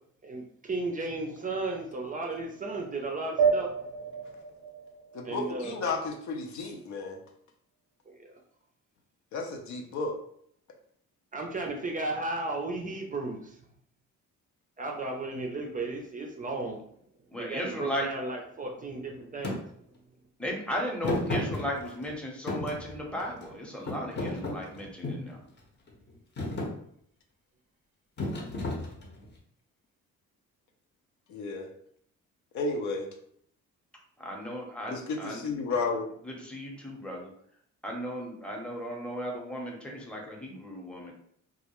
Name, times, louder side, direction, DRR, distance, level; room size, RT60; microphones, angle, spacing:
voice 1, 0.2-3.7 5.2-5.8 11.3-13.5 14.8-16.9 17.3-19.6, right 2 dB, 30° right, 1 dB, 0.4 m, -34 dB
sound 1, 3.4-6.3, right 6 dB, 85° right, 0.5 m, -30 dB
voice 2, 5.1-7.2 9.3-10.1 31.3-31.7 32.5-33.1 34.9-36.1, left 3 dB, 70° left, 2 dB, 0.6 m, -32 dB
voice 3, 17.3-18.1 20.4-25.4 34.2-35.4 36.2-37.3 37.8-41.1, equal, 5° left, -2 dB, 0.7 m, -36 dB
Thump thud, 19.4-19.6 21.0-22.1 22.5-23.5 23.9-25.3 25.9-26.1 26.4-26.7 28.2-29.3, left 2 dB, 35° left, 0.7 m, -33 dB
2.3 x 2.0 x 2.9 m, 0.66 s
cardioid pair, 90°, 30 cm